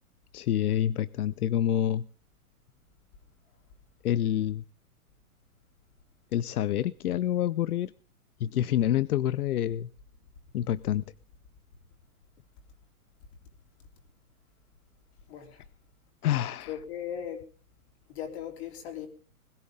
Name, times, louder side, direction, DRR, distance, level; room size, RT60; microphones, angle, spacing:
voice 1, 0.3-2.1 4.0-4.6 6.3-7.9 8.4-9.9 10.5-11.0 16.2-16.7, left 11 dB, 85° left, 0.7 m, -27 dB
voice 2, 15.3-15.7 16.7-17.4 18.1-19.1, left 9 dB, 45° left, 4.0 m, -38 dB
21.0 x 14.5 x 3.7 m
hypercardioid pair, 155°, 43 cm